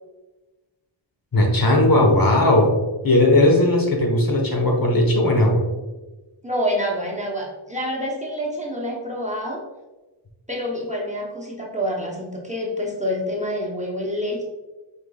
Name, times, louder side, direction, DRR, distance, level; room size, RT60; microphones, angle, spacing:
voice 1, 1.3-2.7 3.0-5.6, left 1 dB, 45° left, 1 dB, 1.1 m, -17 dB
voice 2, 6.4-9.6 10.5-14.4, equal, 15° right, -3 dB, 0.9 m, -27 dB
5.8 x 3.6 x 2.4 m, 1.1 s
wide cardioid pair, 55°, 48 cm